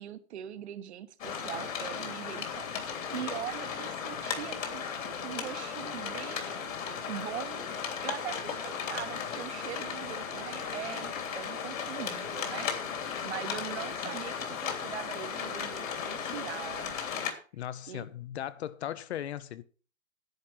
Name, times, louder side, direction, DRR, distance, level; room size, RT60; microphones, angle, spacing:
voice 1, 0.0-2.7 2.9-4.8 5.2-6.7 7.1-7.6 8.0-12.7 13.2-16.9 17.9-18.1, right 11 dB, 50° right, 1.4 m, -41 dB
sound 1, 1.2-17.3, left 7 dB, 70° left, 3.2 m, -36 dB
voice 2, 17.5-19.6, left 11 dB, 50° left, 0.9 m, -37 dB
10.5 x 8.5 x 6.1 m
hypercardioid pair, 150°, 41 cm